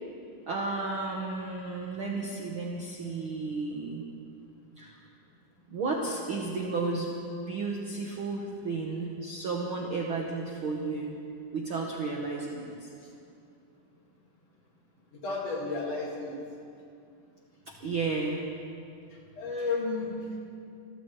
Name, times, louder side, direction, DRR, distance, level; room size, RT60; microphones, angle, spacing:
voice 1, 0.5-4.0 4.8-5.0 5.7-7.1 7.5-11.1 11.5-12.9 17.7-18.5, right 3 dB, 60° right, -1 dB, 1.4 m, -33 dB
voice 2, 15.2-16.4 19.4-20.4, left 3 dB, 50° left, -3 dB, 2.9 m, -32 dB
27.0 x 14.5 x 3.2 m, 2.5 s
omnidirectional pair, 4.0 m